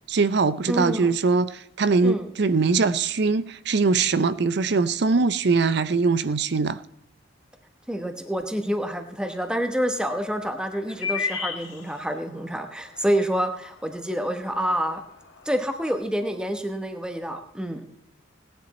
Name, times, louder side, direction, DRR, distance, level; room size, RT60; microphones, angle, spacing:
voice 1, 0.1-6.8, right 4 dB, 60° right, 0.5 m, -22 dB
voice 2, 0.7-1.1 2.0-2.3 7.9-15.0 15.4-17.8, equal, 5° right, 1.1 m, -27 dB
sound 1, 9.2-15.9, left 5 dB, 80° left, 1.9 m, -37 dB
17.5 x 10.5 x 4.2 m
head